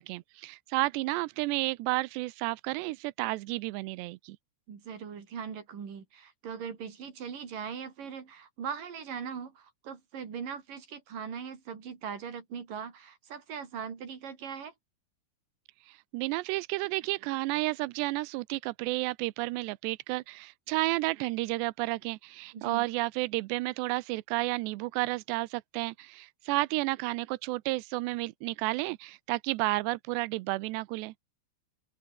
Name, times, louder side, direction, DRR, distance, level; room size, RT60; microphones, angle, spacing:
voice 1, 0.0-4.4 15.9-31.1, right 21 dB, 85° right, 2.5 m, -31 dB
voice 2, 4.7-14.7 22.5-22.9, right 7 dB, 45° right, 4.9 m, -40 dB
open air
omnidirectional pair, 5.7 m